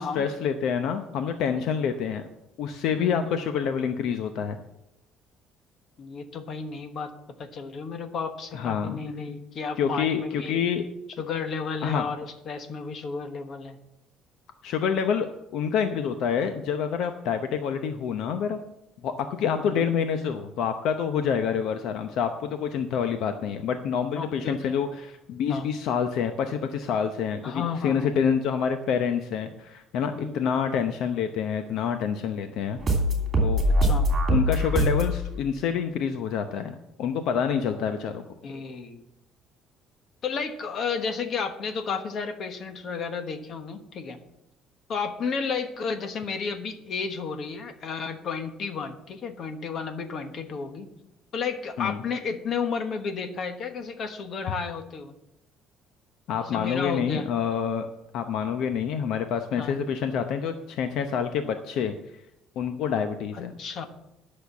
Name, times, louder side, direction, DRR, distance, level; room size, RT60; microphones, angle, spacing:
voice 1, 0.0-2.2 2.6-4.6 8.5-9.0 9.8-10.8 11.8-12.1 14.6-15.3 15.5-18.6 19.0-32.8 33.4-33.6 34.3-38.2 51.8-52.0 56.3-57.9 58.1-61.9 62.6-63.5, left 7 dB, 65° left, 7 dB, 0.8 m, -27 dB
voice 2, 6.0-7.1 7.4-10.6 11.2-13.8 19.4-19.9 24.2-24.8 25.5-25.7 27.4-28.1 30.1-30.4 33.8-34.1 38.4-39.0 40.2-44.2 44.9-50.9 51.3-55.1 56.4-57.3 59.6-59.7 63.3-63.9, left 5 dB, 40° left, 7 dB, 1.2 m, -32 dB
sound 1, 32.8-35.2, equal, 25° right, 2.9 m, -22 dB
10.5 x 6.6 x 7.1 m, 0.85 s
cardioid pair, 160°, 0 cm